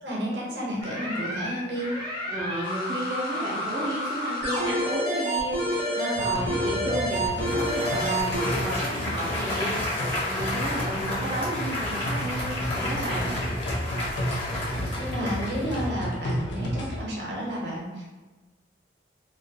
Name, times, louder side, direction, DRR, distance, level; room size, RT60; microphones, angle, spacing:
voice 1, 0.0-1.9 13.9-14.0 15.0-18.0, equal, 60° right, -4 dB, 0.7 m, -31 dB
sound 1, 0.8-8.5, equal, 45° left, 0.9 m, -29 dB
voice 2, 2.3-13.4, right 1 dB, 25° right, -8 dB, 0.3 m, -32 dB
sound 2, 6.1-17.0, equal, 70° left, 0.5 m, -32 dB
Applause, 7.0-16.0, left 1 dB, 30° left, 0.7 m, -32 dB
2.2 x 2.1 x 2.6 m, 1.2 s
head